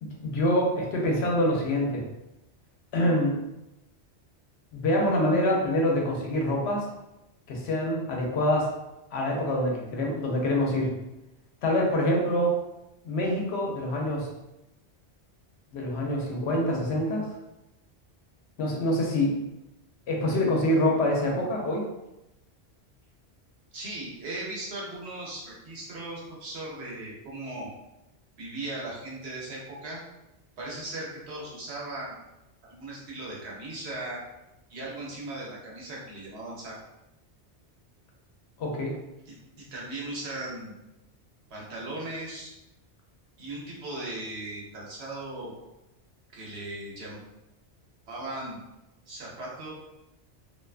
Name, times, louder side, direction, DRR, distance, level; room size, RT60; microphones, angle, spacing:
voice 1, 0.2-2.0 2.9-3.4 4.7-6.9 7.5-8.7 9.1-10.9 11.6-12.6 13.0-14.3 15.7-17.3 18.6-19.4 20.1-21.8 38.6-39.0, left 1 dB, 75° left, -1 dB, 0.9 m, -25 dB
voice 2, 23.7-27.7 28.4-30.0 30.6-32.2 32.6-34.2 34.7-36.8 39.3-40.8 41.5-42.5 43.4-45.5 46.3-47.2 48.1-48.6 49.1-49.7, right 2 dB, 75° right, -4 dB, 1.0 m, -38 dB
2.5 x 2.2 x 2.3 m, 0.94 s
omnidirectional pair, 1.1 m